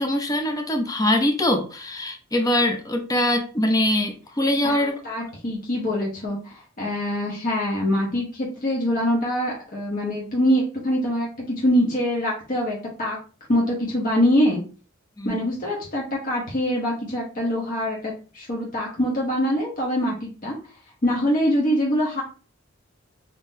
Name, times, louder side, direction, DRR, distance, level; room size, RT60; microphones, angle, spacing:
voice 1, 0.0-4.9 15.2-15.4, left 1 dB, 15° left, 5 dB, 0.5 m, -23 dB
voice 2, 4.6-13.2 13.5-14.6 15.2-20.5 21.0-22.2, equal, 40° left, -3 dB, 0.9 m, -24 dB
3.7 x 2.7 x 2.7 m, 0.36 s
head